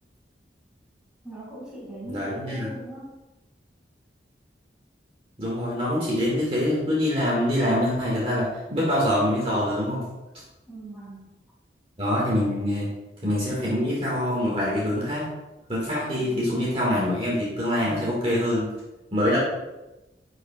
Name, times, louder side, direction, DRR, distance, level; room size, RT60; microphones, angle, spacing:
voice 1, 1.2-3.1 10.2-10.3 10.7-11.3 16.2-16.6, right 1 dB, 5° right, -6 dB, 2.2 m, -40 dB
voice 2, 2.1-2.7 5.4-10.0 12.0-12.9 13.2-15.3 15.7-18.7 19.1-19.4, left 1 dB, 30° right, -6 dB, 1.8 m, -25 dB
10.5 x 4.9 x 2.3 m, 1.0 s
head